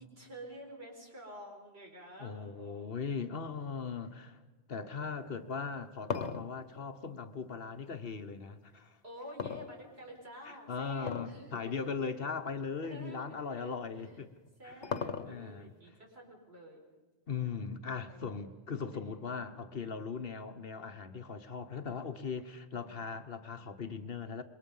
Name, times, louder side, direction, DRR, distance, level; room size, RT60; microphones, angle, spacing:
voice 1, 0.0-3.7 4.0-4.1 4.9-5.1 9.0-11.7 12.8-14.2 14.6-16.8 17.9-18.4 18.9-19.4 22.7-23.1, equal, 65° right, 4.8 m, -50 dB
voice 2, 2.2-4.4 4.7-9.0 10.5-14.3 14.6-14.9 15.2-15.7 17.3-24.4, left 5 dB, 55° left, 1.2 m, -39 dB
sound 1, 5.6-8.0 9.4-10.3 11.0-11.4 11.8-11.9 12.6-12.7 14.1-15.6, left 6 dB, 75° left, 1.4 m, -38 dB
26.5 x 22.0 x 5.5 m
omnidirectional pair, 1.2 m